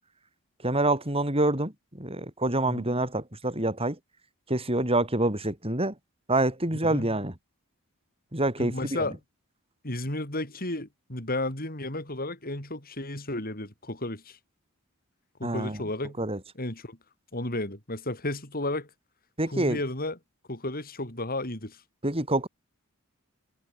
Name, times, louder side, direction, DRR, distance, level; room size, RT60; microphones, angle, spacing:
voice 1, 0.6-4.0 4.5-5.9 6.3-7.3 8.3-9.0 15.4-15.8 16.2-16.4 19.4-19.8 22.0-22.5, right 2 dB, 25° right, 6.9 m, -26 dB
voice 2, 8.6-9.2 9.8-14.4 15.4-16.2 16.6-17.0 17.3-18.9 19.5-20.2 20.5-21.8, left 2 dB, 40° left, 7.2 m, -33 dB
head